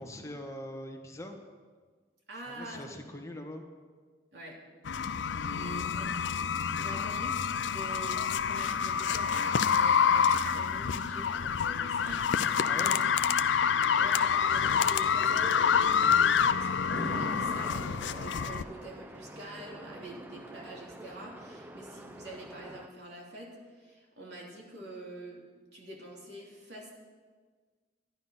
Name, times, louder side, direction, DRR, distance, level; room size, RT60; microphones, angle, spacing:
voice 1, 0.0-1.4 2.3-3.6 5.3-5.9 6.8-7.1 12.6-13.0 15.3-15.4, left 1 dB, 15° left, 2 dB, 1.3 m, -43 dB
voice 2, 2.3-2.9 4.3-4.6 5.5-6.1 6.4-7.4 7.7-12.3 13.9-25.4 25.7-26.9, right 1 dB, 65° right, -3 dB, 3.0 m, -45 dB
sound 1, 4.9-18.6, left 7 dB, 85° left, 0.5 m, -27 dB
sound 2, 10.3-15.3, equal, 60° left, 1.4 m, -48 dB
Chatter / Traffic noise roadway noise / Train, 16.9-22.9, right 1 dB, 10° right, 0.6 m, -44 dB
12.0 x 11.0 x 5.7 m, 1.5 s
head